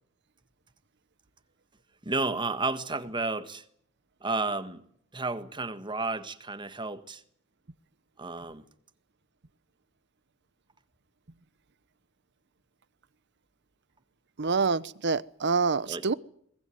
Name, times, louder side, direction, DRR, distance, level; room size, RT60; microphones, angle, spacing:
voice 1, 2.0-3.6 4.2-4.9 5.1-7.2 8.2-8.6 15.9-16.1, right 3 dB, 25° right, 1.6 m, -32 dB
voice 2, 14.4-16.1, right 4 dB, 55° right, 0.9 m, -26 dB
22.5 x 20.0 x 9.4 m
head